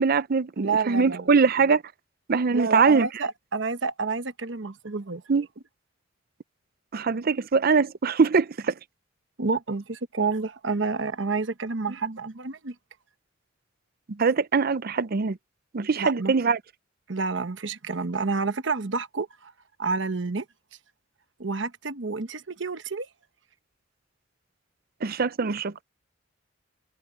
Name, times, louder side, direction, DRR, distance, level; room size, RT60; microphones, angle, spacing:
voice 1, 0.0-1.8 2.3-3.1 5.3-5.5 6.9-8.7 14.1-15.4 15.7-16.6 25.0-25.7, right 5 dB, 50° right, 0.6 m, -22 dB
voice 2, 0.6-1.3 2.5-5.2 9.4-12.7 16.0-16.3 17.1-19.5 19.8-20.4 21.4-23.1, right 4 dB, 70° right, 1.1 m, -29 dB
head